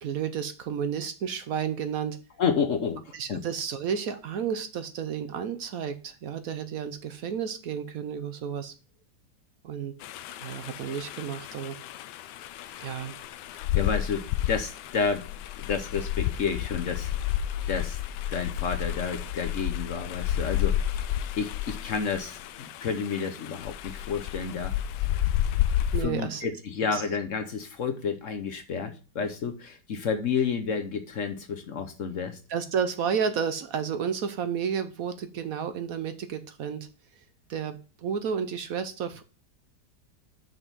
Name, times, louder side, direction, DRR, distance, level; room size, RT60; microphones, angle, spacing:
voice 1, 0.0-2.2 3.1-8.7 9.6-9.9 10.4-11.8 12.8-13.2 25.9-26.5 26.9-27.0 32.5-36.9 37.5-39.2, right 7 dB, 65° right, 10 dB, 1.0 m, -31 dB
voice 2, 2.4-3.4 12.6-12.8 13.8-15.3 15.6-17.1 17.7-18.0 18.3-24.8 26.0-32.4, left 6 dB, 55° left, 8 dB, 1.0 m, -30 dB
sound 1, 10.0-26.0, left 11 dB, 80° left, 1.2 m, -31 dB
6.1 x 5.3 x 6.0 m, 0.36 s
omnidirectional pair, 1.8 m